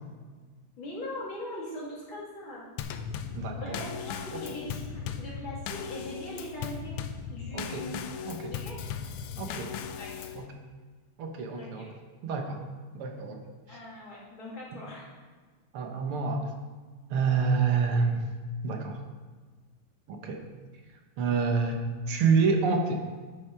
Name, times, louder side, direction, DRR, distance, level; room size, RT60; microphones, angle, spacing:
voice 1, 0.8-2.7 3.4-7.0 7.3-8.1 8.5-8.8 9.3-9.7 10.0-10.2 11.5-11.9 13.7-15.1, left 1 dB, 65° left, -5 dB, 3.4 m, -41 dB
Drum kit / Snare drum / Bass drum, 2.8-10.5, left 7 dB, 85° left, 1.6 m, -37 dB
voice 2, 3.3-3.8 4.3-4.4 7.5-7.9 8.3-8.6 9.4-9.7 10.4-10.5 11.2-11.9 12.2-12.6 12.9-13.4 15.7-16.5 17.1-18.2 18.6-19.0 20.1-20.4 21.2-21.8 22.1-23.0, right 5 dB, 85° right, 4 dB, 2.1 m, -27 dB
10.5 x 8.2 x 4.7 m, 1.4 s
omnidirectional pair, 2.4 m